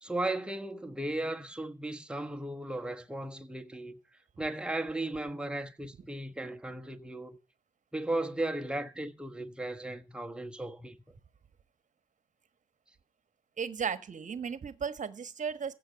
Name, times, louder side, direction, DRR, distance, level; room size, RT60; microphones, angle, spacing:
voice 1, 0.0-4.0 4.4-7.4 7.9-11.0, right 1 dB, 5° right, 1.2 m, -36 dB
voice 2, 13.6-15.7, right 6 dB, 40° right, 1.3 m, -35 dB
15.5 x 5.6 x 7.9 m
hypercardioid pair, 50°, 20 cm